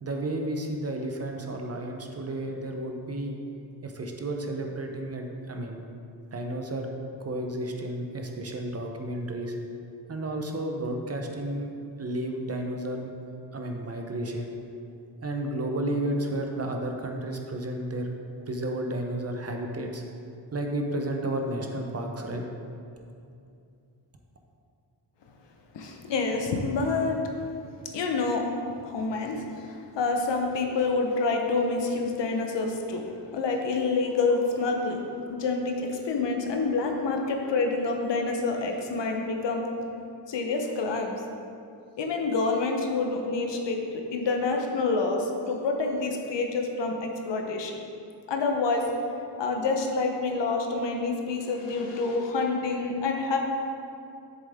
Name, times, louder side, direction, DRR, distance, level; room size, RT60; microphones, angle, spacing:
voice 1, 0.0-3.4 3.8-5.8 6.3-6.9 7.2-9.5 10.1-11.7 12.0-13.1 13.5-14.5 15.2-18.1 18.5-20.0 20.5-22.4, right 1 dB, 35° right, 3 dB, 0.8 m, -32 dB
voice 2, 25.7-27.2 27.9-28.5 28.8-33.1 33.3-35.0 35.3-39.7 40.3-41.2 42.0-47.7 48.3-48.9 49.4-53.4, left 3 dB, 70° left, 3 dB, 1.0 m, -27 dB
7.2 x 7.2 x 3.6 m, 2.6 s
cardioid pair, 100°, 45 cm